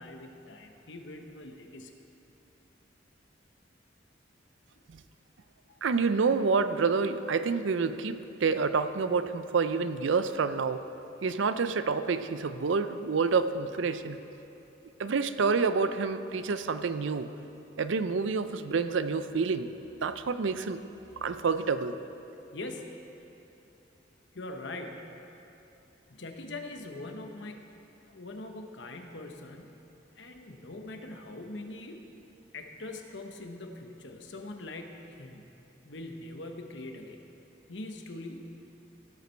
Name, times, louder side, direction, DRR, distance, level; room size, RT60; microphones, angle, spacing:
voice 1, 0.0-2.0 4.7-4.8 5.7-5.8 22.5-22.9 24.3-25.0 26.1-27.6 28.1-29.9 30.1-32.0 32.5-35.4 35.8-37.2 37.7-38.5, left 2 dB, 70° left, 4 dB, 1.0 m, -42 dB
voice 2, 5.8-10.8 11.2-14.2 15.0-17.3 17.8-19.7 20.0-20.8 21.2-22.0, right 4 dB, 80° right, 11 dB, 0.5 m, -28 dB
16.0 x 8.1 x 4.5 m, 2.9 s
head